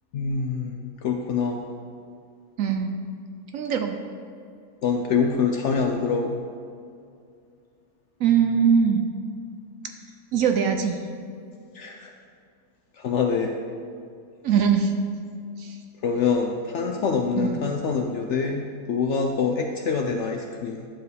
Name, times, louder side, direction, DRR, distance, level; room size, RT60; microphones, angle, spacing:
voice 1, 0.1-1.6 4.8-6.4 11.7-12.1 13.0-13.6 16.0-20.9, left 5 dB, 65° left, 3 dB, 0.7 m, -25 dB
voice 2, 2.6-3.0 3.5-3.9 8.2-9.0 10.3-11.0 14.4-14.9 15.6-15.8 17.4-17.6, right 7 dB, 70° right, 6 dB, 0.8 m, -21 dB
10.5 x 6.9 x 3.3 m, 2.4 s
omnidirectional pair, 1.7 m